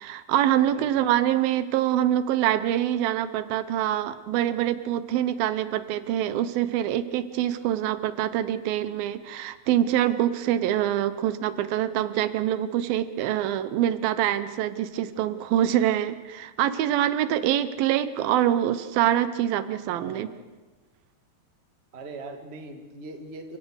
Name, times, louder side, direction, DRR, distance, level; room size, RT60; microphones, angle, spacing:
voice 1, 0.0-20.3, right 11 dB, 85° right, 13 dB, 2.7 m, -25 dB
voice 2, 0.7-1.2 19.9-20.5 21.9-23.6, right 3 dB, 25° right, 4 dB, 1.5 m, -41 dB
28.5 x 17.0 x 6.5 m, 1.2 s
omnidirectional pair, 4.2 m